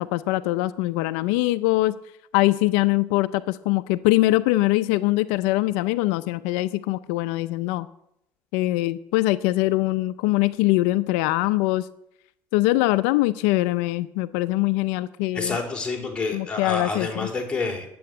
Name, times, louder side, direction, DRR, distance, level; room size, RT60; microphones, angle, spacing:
voice 1, 0.0-2.0 2.3-7.9 8.5-11.9 12.5-15.6 16.3-17.3, left 18 dB, 90° left, 13 dB, 0.5 m, -22 dB
voice 2, 15.3-17.9, left 3 dB, 15° left, 0 dB, 3.6 m, -28 dB
10.5 x 7.7 x 8.9 m, 0.79 s
supercardioid pair, 105°, 7 cm